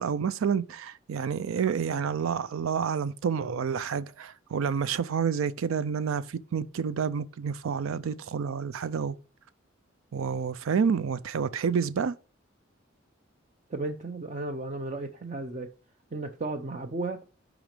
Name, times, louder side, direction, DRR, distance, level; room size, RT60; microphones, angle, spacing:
voice 1, 0.0-9.2 10.1-12.2, right 6 dB, 90° right, 0.4 m, -29 dB
voice 2, 13.7-15.7 16.1-17.2, right 2 dB, 35° right, 0.6 m, -34 dB
6.1 x 5.1 x 6.6 m
head